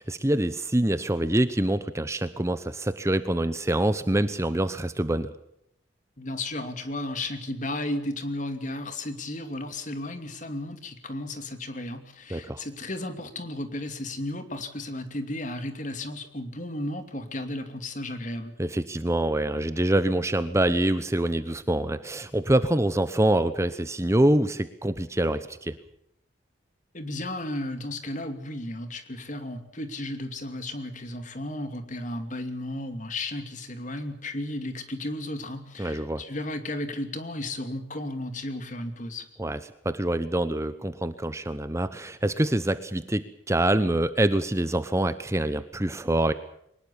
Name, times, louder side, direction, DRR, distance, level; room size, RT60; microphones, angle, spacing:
voice 1, 0.0-5.3 12.3-12.6 18.6-25.7 35.8-36.2 39.4-39.6 39.8-46.3, right 1 dB, 15° right, 12 dB, 0.9 m, -25 dB
voice 2, 6.2-18.5 26.9-39.3, left 1 dB, 40° left, 8 dB, 2.7 m, -34 dB
23.0 x 20.0 x 7.1 m, 0.75 s
head